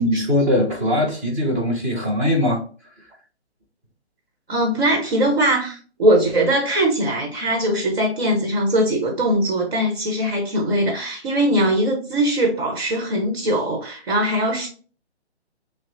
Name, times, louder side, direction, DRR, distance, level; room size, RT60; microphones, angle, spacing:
voice 1, 0.0-2.6, left 1 dB, 15° right, 0.6 m, -21 dB
voice 2, 4.5-14.7, right 1 dB, 50° right, 1.1 m, -21 dB
5.8 x 2.1 x 2.6 m
hypercardioid pair, 150°, 33 cm